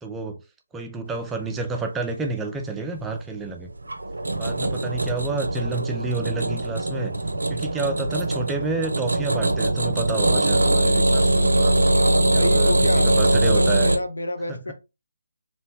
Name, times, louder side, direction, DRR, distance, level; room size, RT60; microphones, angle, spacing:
voice 1, 0.0-0.4 0.7-3.7 4.4-7.1 7.5-11.8 12.3-13.9 14.5-14.7, right 3 dB, 10° right, 0.3 m, -30 dB
sound 1, 3.7-14.0, right 1 dB, 80° right, 0.4 m, -21 dB
voice 2, 4.2-4.7 11.9-13.1 13.4-14.7, left 1 dB, 80° left, 0.7 m, -29 dB
2.7 x 2.0 x 3.2 m
figure-of-eight pair, 155°, 0 cm